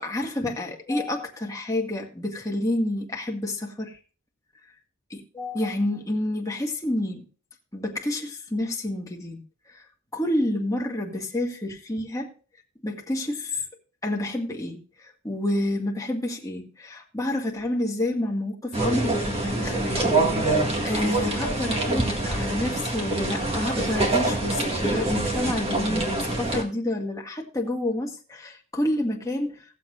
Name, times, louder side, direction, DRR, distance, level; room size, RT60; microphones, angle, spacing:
voice 1, 0.0-4.0 5.1-7.3 7.7-9.4 9.7-9.9 10.1-12.3 12.8-13.6 14.0-29.8, left 1 dB, 15° left, 0 dB, 1.7 m, -29 dB
sound 1, 18.7-26.6, right 2 dB, 30° right, 1.9 m, -25 dB
18.0 x 7.3 x 2.5 m, 0.37 s
head